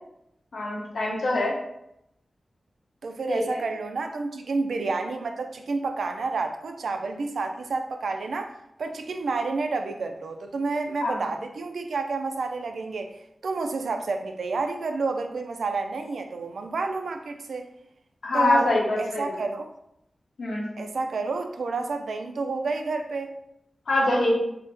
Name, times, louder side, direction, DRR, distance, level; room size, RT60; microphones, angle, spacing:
voice 1, 0.5-1.5 3.3-3.6 11.0-11.2 18.2-19.4 20.4-20.7 23.9-24.3, left 2 dB, 80° left, -3 dB, 0.9 m, -24 dB
voice 2, 3.0-8.5 8.8-17.7 18.3-19.7 20.8-23.3, right 3 dB, 90° right, 6 dB, 0.3 m, -30 dB
3.1 x 2.1 x 3.3 m, 0.80 s
wide cardioid pair, 130°, 0 cm